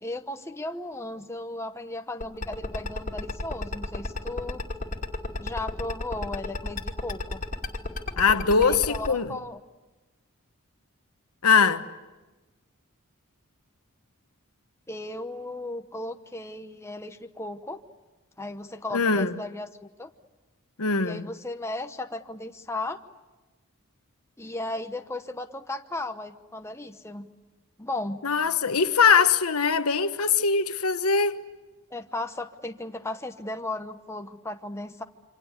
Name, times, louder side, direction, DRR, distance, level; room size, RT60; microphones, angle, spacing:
voice 1, 0.0-4.6 5.4-7.4 8.6-9.6 14.9-17.8 18.4-20.1 21.0-23.0 24.4-27.3 27.8-28.2 31.9-35.0, left 2 dB, 10° left, 0.9 m, -35 dB
sound 1, 2.2-9.1, left 2 dB, 35° left, 2.5 m, -31 dB
voice 2, 8.2-9.3 11.4-11.8 18.9-19.3 20.8-21.2 28.2-31.4, left 5 dB, 90° left, 1.3 m, -22 dB
27.5 x 25.5 x 8.2 m
head